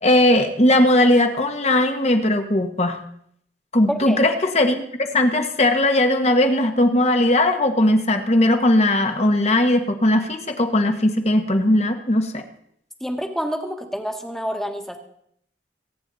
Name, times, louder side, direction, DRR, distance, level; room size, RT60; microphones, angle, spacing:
voice 1, 0.0-3.0 3.7-4.8 5.1-12.4, left 1 dB, 40° left, 6 dB, 1.4 m, -18 dB
voice 2, 3.9-4.2 13.0-15.0, equal, ahead, 4 dB, 1.5 m, -27 dB
24.0 x 9.3 x 4.1 m, 0.69 s
head